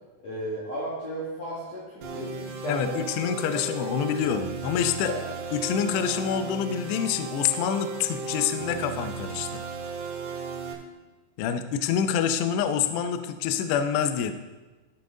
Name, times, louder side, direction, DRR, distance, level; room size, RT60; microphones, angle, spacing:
voice 1, 0.2-3.0 3.5-3.7 5.1-5.3, equal, 55° left, -7 dB, 1.9 m, -34 dB
sound 1, 2.0-10.7, right 5 dB, 65° right, 3.1 m, -35 dB
voice 2, 2.7-5.1 5.5-9.6 11.4-14.3, left 8 dB, 85° left, 9 dB, 2.4 m, -27 dB
15.5 x 5.5 x 3.8 m, 1.2 s
omnidirectional pair, 5.7 m